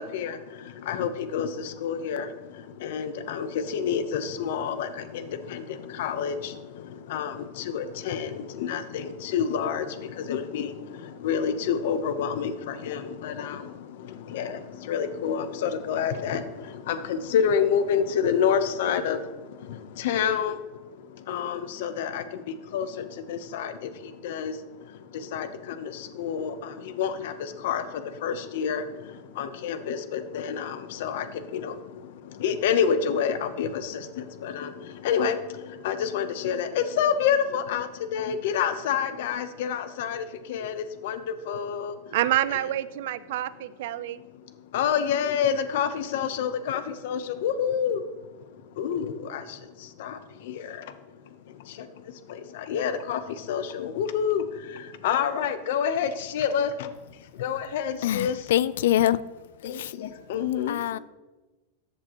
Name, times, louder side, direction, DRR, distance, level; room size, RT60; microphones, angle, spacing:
voice 1, 0.0-42.1 44.7-51.1 51.4-56.9 57.3-58.4 59.6-60.8, left 7 dB, 60° left, 0.7 m, -29 dB
voice 2, 42.1-44.2, right 13 dB, 60° right, 0.4 m, -27 dB
voice 3, 58.0-59.2 59.7-59.9 60.7-61.0, left 12 dB, 75° left, 0.3 m, -24 dB
14.0 x 7.5 x 3.0 m
supercardioid pair, 170°, 0 cm